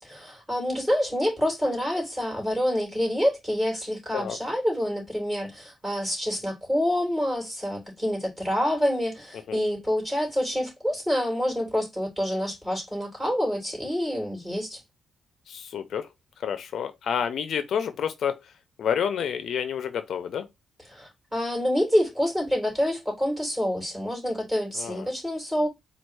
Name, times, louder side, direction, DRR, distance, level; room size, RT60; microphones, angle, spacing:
voice 1, 0.0-14.8 20.9-25.7, equal, 10° right, 3.2 m, -27 dB
voice 2, 15.5-16.1 16.4-18.4 18.8-20.5 24.8-25.1, left 8 dB, 65° left, 0.5 m, -29 dB
4.4 x 2.4 x 4.6 m
cardioid pair, 145°, 0 cm